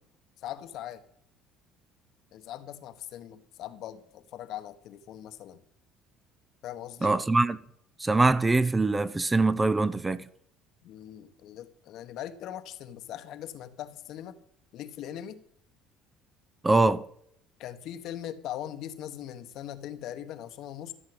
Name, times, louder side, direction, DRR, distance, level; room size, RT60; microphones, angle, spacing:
voice 1, 0.4-1.0 2.3-5.6 6.6-7.2 10.8-14.4 14.7-15.4 17.6-20.9, left 11 dB, 65° left, 1.2 m, -40 dB
voice 2, 7.0-7.6 8.0-10.3 16.6-17.1, right 3 dB, 15° right, 0.7 m, -23 dB
14.0 x 7.5 x 7.9 m
cardioid pair, 110°, 0 cm